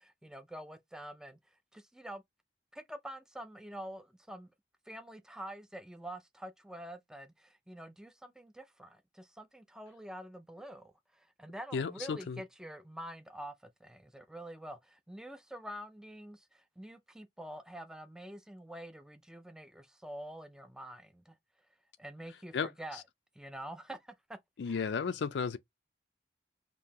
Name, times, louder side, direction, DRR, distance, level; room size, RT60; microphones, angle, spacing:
voice 1, 0.0-2.2 2.7-4.5 4.9-21.4 22.0-23.0 23.3-24.4 24.7-24.9, right 1 dB, 5° right, 0.4 m, -47 dB
voice 2, 11.7-12.4 22.5-23.0 24.6-25.6, left 6 dB, 80° left, 0.4 m, -34 dB
5.2 x 2.7 x 2.8 m
head